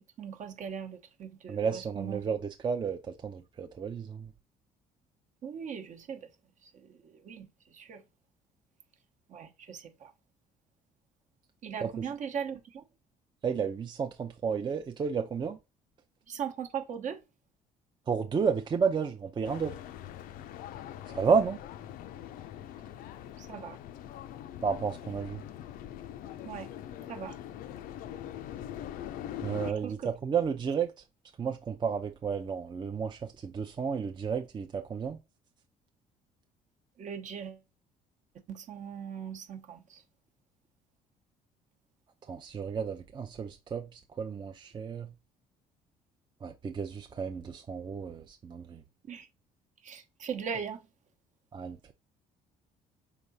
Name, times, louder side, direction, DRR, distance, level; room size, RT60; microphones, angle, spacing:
voice 1, 0.2-2.2 5.4-6.3 6.6-8.0 9.3-10.1 11.6-12.8 16.3-17.2 23.4-23.8 26.4-26.7 27.1-27.4 29.6-30.1 37.0-37.6 38.5-40.0 49.1-49.3 49.8-50.8, right 7 dB, 55° right, 0.9 m, -39 dB
voice 2, 1.5-2.4 2.6-4.3 11.8-11.9 13.4-15.6 18.1-19.8 21.1-21.6 24.6-25.4 29.4-30.9 31.4-35.2 42.3-45.1 46.4-48.8 51.5-51.9, right 6 dB, 30° right, 0.5 m, -32 dB
sound 1, 19.4-29.7, left 11 dB, 70° left, 0.4 m, -43 dB
4.7 x 3.3 x 2.7 m
supercardioid pair, 85°, 15 cm